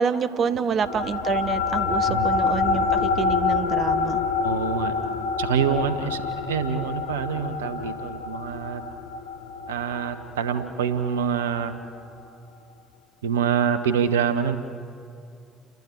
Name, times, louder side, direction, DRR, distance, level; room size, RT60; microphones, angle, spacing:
voice 1, 0.0-4.2, right 6 dB, 50° right, 12 dB, 1.0 m, -27 dB
sound 1, 0.8-11.6, left 5 dB, 80° left, 1.0 m, -26 dB
voice 2, 1.9-2.3 4.4-5.0 5.4-8.8 9.7-11.7 13.2-14.6, right 7 dB, 80° right, 9 dB, 1.0 m, -26 dB
29.5 x 12.0 x 9.2 m, 2.4 s
hypercardioid pair, 50°, 0 cm